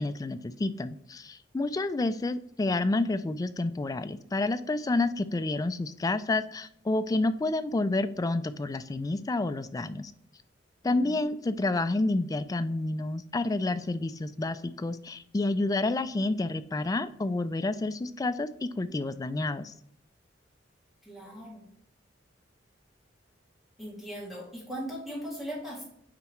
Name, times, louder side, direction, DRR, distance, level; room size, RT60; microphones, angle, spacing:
voice 1, 0.0-10.1 10.8-19.7, left 2 dB, 20° left, 11 dB, 0.3 m, -29 dB
voice 2, 10.8-11.2 21.0-21.7 23.8-25.8, equal, ahead, -5 dB, 2.3 m, -39 dB
8.4 x 4.7 x 3.1 m, 0.67 s
head